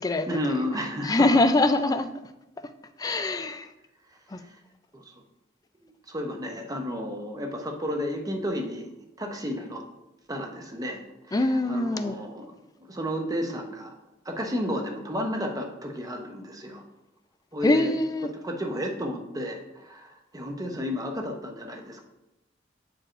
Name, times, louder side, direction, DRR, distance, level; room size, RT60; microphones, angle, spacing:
voice 1, 0.3-1.4 4.5-4.6 4.9-5.0 5.8-8.9 9.2-9.8 10.3-12.5 12.9-13.9 14.2-16.8 17.5-17.9 18.4-22.0, equal, 20° right, 3 dB, 0.7 m, -32 dB
voice 2, 1.0-2.1 3.0-3.7 4.3-4.4 11.3-12.1 17.6-18.3, left 2 dB, 20° left, 8 dB, 0.3 m, -23 dB
8.7 x 4.6 x 2.5 m, 0.94 s
head